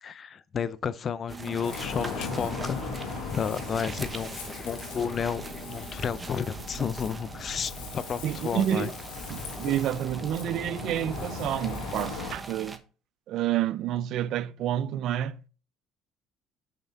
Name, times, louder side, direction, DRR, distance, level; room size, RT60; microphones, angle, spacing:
voice 1, 0.0-2.8 3.3-8.9, left 7 dB, 45° left, 0.5 m, -32 dB
sound 1, 1.3-12.8, right 3 dB, 15° right, 0.9 m, -42 dB
Ocean, 1.6-12.3, left 4 dB, 85° left, 1.8 m, -38 dB
voice 2, 8.2-8.9 9.3-12.8 13.3-15.5, right 11 dB, 65° right, 0.4 m, -29 dB
5.8 x 5.4 x 3.5 m
supercardioid pair, 85°, 0 cm